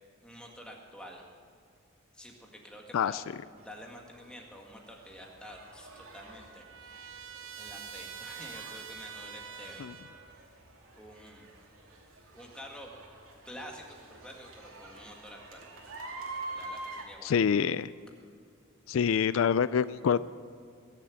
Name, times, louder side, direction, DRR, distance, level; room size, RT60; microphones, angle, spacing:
voice 1, 0.2-1.2 2.1-7.1 7.5-9.8 10.9-11.5 12.3-12.9 13.4-15.6 16.5-17.4, equal, 5° left, 0 dB, 1.9 m, -48 dB
sound 1, 3.6-17.1, right 2 dB, 90° right, 2.6 m, -47 dB
Trumpet, 5.7-10.4, right 7 dB, 65° right, 1.0 m, -46 dB
voice 2, 17.2-17.9 18.9-20.2, left 7 dB, 75° left, 16 dB, 0.3 m, -26 dB
21.0 x 7.5 x 8.6 m, 2.3 s
head